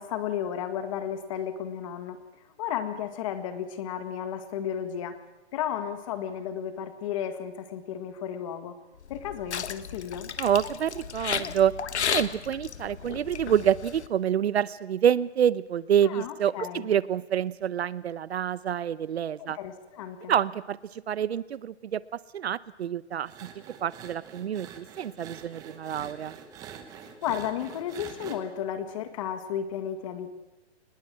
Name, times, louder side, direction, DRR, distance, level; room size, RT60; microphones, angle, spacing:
voice 1, 0.0-2.2 2.6-5.2 5.5-8.8 9.1-10.3 16.0-16.9 19.4-20.3 27.2-30.3, left 9 dB, 30° left, 9 dB, 2.0 m, -33 dB
sound 1, 9.0-14.1, left 8 dB, 75° left, 1.6 m, -34 dB
voice 2, 10.4-11.7 12.1-19.6 20.3-23.3 23.8-26.3, right 9 dB, 65° right, 19 dB, 0.9 m, -27 dB
sound 2, 23.2-28.4, right 8 dB, 10° right, 1.1 m, -45 dB
24.5 x 20.5 x 7.7 m, 1.0 s
hypercardioid pair, 170°, 34 cm